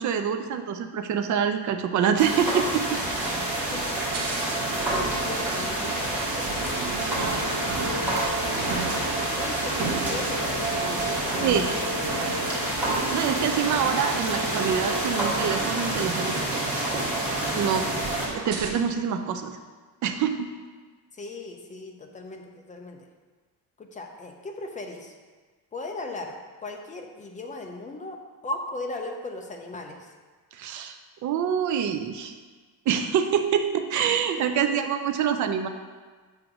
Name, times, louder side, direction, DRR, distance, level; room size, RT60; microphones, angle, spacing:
voice 1, 0.0-3.0 3.6-3.7 11.4-11.7 13.1-17.0 17.5-17.9 18.3-19.6 20.0-20.5 30.6-31.0 31.2-32.3 32.9-35.7, right 8 dB, 45° right, 7 dB, 0.4 m, -26 dB
sound 1, 2.2-18.3, right 1 dB, 5° right, 1.2 m, -28 dB
sound 2, 3.0-18.7, right 3 dB, 70° right, 1.0 m, -34 dB
voice 2, 3.6-4.1 4.9-6.9 7.8-8.3 8.6-9.0 9.4-12.5 21.1-23.1 23.8-25.1 25.7-28.2 28.4-30.1 34.4-34.8, left 2 dB, 20° left, 3 dB, 0.4 m, -38 dB
7.7 x 2.6 x 5.8 m, 1.4 s
cardioid pair, 170°, 41 cm